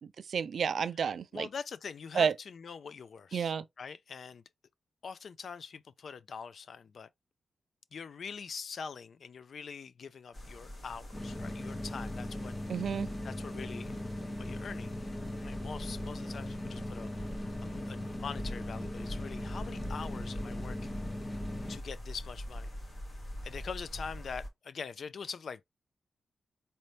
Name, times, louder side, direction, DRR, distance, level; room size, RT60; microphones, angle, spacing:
voice 1, 0.0-1.5 2.1-2.3 3.3-3.6 12.7-13.1, right 6 dB, 60° right, 0.4 m, -31 dB
voice 2, 1.3-4.4 5.0-7.1 7.9-12.5 13.2-14.0 14.4-15.0 15.4-21.0 21.7-22.7 23.4-25.6, left 6 dB, 55° left, 0.4 m, -43 dB
sound 1, 10.3-24.5, equal, 40° left, 2.2 m, -44 dB
sound 2, 11.1-21.8, left 1 dB, 20° left, 0.8 m, -39 dB
4.2 x 2.7 x 3.2 m
wide cardioid pair, 140°, 0 cm